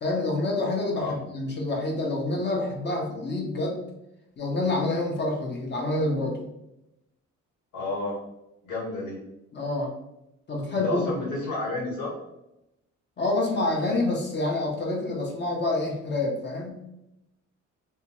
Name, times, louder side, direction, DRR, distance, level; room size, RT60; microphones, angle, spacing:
voice 1, 0.0-3.8 4.4-6.5 9.5-9.9 10.5-11.1 13.2-16.8, left 2 dB, 35° left, 0 dB, 0.6 m, -27 dB
voice 2, 7.7-8.2 8.6-9.2 10.7-12.1, left 2 dB, 85° left, -4 dB, 1.3 m, -31 dB
2.7 x 2.2 x 2.9 m, 0.88 s
cardioid pair, 90°, 30 cm